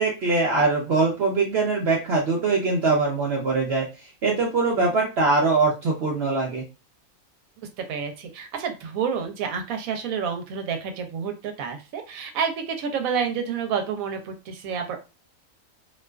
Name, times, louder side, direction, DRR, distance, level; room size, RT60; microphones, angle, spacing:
voice 1, 0.0-3.9 4.2-6.6, right 3 dB, 60° right, -2 dB, 0.8 m, -22 dB
voice 2, 7.8-15.0, right 6 dB, 85° right, 6 dB, 1.0 m, -29 dB
2.5 x 2.3 x 2.2 m, 0.29 s
omnidirectional pair, 1.4 m